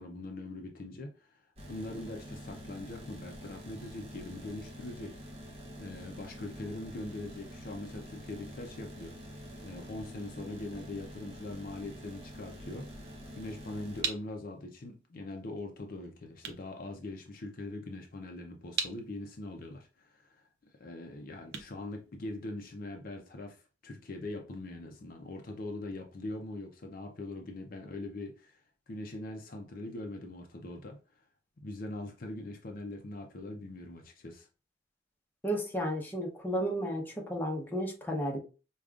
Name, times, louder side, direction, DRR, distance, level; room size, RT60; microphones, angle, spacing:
voice 1, 0.0-1.4 1.7-5.2 5.8-20.5 20.8-28.6 28.9-31.0 31.6-34.5, left 2 dB, 50° left, 0.5 m, -42 dB
sound 1, 1.6-14.0, equal, 35° right, 0.8 m, -47 dB
sound 2, 14.0-22.8, right 5 dB, 65° right, 0.6 m, -42 dB
voice 2, 35.4-38.4, equal, 10° left, 0.8 m, -33 dB
4.9 x 2.3 x 2.4 m
head